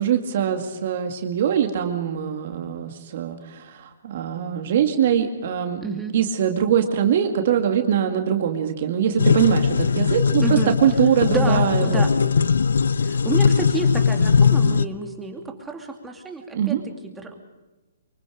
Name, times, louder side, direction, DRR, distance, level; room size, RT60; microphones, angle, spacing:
voice 1, 0.0-5.8 6.1-10.4 10.8-12.0 16.5-16.8, right 9 dB, 50° right, 5 dB, 2.2 m, -22 dB
voice 2, 5.8-6.2 10.4-10.7 11.3-12.1 13.0-16.8 17.0-17.3, right 3 dB, 10° right, 3 dB, 2.6 m, -29 dB
sound 1, 9.2-14.8, left 5 dB, 80° left, 0.7 m, -19 dB
24.5 x 23.5 x 5.1 m, 1.2 s
hypercardioid pair, 145°, 0 cm